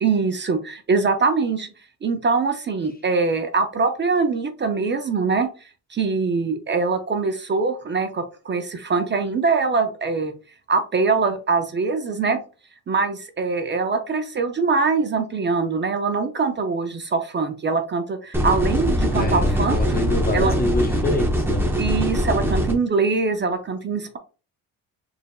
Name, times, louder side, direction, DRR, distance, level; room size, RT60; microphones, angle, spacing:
voice 1, 0.0-1.7 2.0-5.5 5.9-10.3 10.7-12.4 12.9-20.0 20.3-20.5 21.8-24.2, right 4 dB, 30° right, 0.5 m, -23 dB
sound 1, 18.3-22.7, equal, 5° right, 0.8 m, -22 dB
voice 2, 19.2-21.7, left 2 dB, 25° left, 0.5 m, -26 dB
4.3 x 3.3 x 2.3 m
cardioid pair, 120°, 37 cm